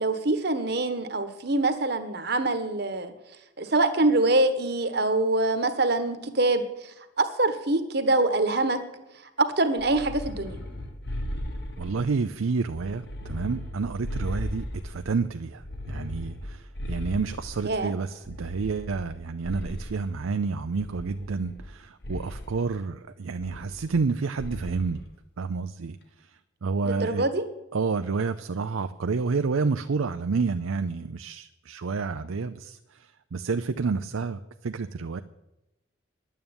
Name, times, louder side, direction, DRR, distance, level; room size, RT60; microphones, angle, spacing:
voice 1, 0.0-3.1 3.6-8.8 9.4-10.6 17.6-17.9 26.8-27.4, right 2 dB, 55° right, 10 dB, 1.2 m, -25 dB
sound 1, 9.8-12.2 12.7-15.1 15.6-17.8 18.2-20.1 20.8-21.7 22.0-22.5 23.4-24.1 24.4-24.9, left 1 dB, 55° left, 1.6 m, -37 dB
voice 2, 11.8-25.0 25.4-26.0 26.6-27.3 27.7-32.8 33.3-35.2, right 4 dB, 85° right, 9 dB, 0.5 m, -29 dB
11.0 x 9.3 x 8.8 m, 0.95 s
head